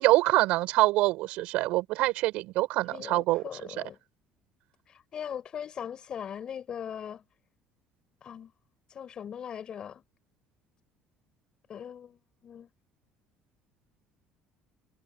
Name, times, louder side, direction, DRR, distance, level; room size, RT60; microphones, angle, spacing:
voice 1, 0.0-3.4, right 19 dB, 75° right, 6.5 m, -25 dB
voice 2, 2.9-4.0 4.9-7.2 8.2-8.5 8.9-10.0 11.7-12.7, left 8 dB, 45° left, 6.0 m, -40 dB
supercardioid pair, 90°, 2 cm